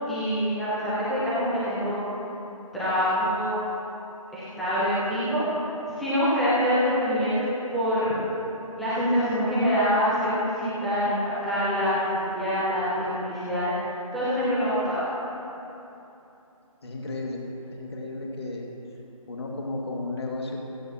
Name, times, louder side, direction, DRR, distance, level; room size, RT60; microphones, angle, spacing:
voice 1, 0.1-2.0 2.7-3.6 4.3-5.4 6.0-7.5 7.7-8.2 8.8-13.8 14.1-15.1, equal, ahead, -12 dB, 0.6 m, -25 dB
voice 2, 16.8-17.4 17.7-18.7 19.3-20.6, left 2 dB, 45° left, -1 dB, 2.1 m, -33 dB
16.5 x 14.5 x 2.9 m, 2.9 s
figure-of-eight pair, 165°, 19 cm